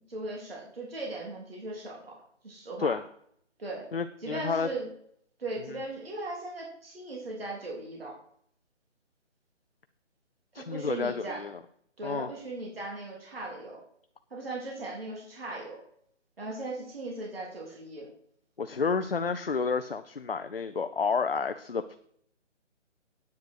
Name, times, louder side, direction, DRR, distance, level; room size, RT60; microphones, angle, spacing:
voice 1, 0.1-2.1 2.4-3.0 3.6-3.9 4.2-4.9 5.4-8.1 10.5-11.5 12.0-13.8 14.3-15.8 16.4-18.1, right 2 dB, 50° right, -2 dB, 3.7 m, -38 dB
voice 2, 3.9-4.7 10.5-11.6 12.0-12.3 18.6-22.0, left 5 dB, 50° left, 10 dB, 0.6 m, -30 dB
9.6 x 9.4 x 4.7 m, 0.65 s
hypercardioid pair, 175°, 36 cm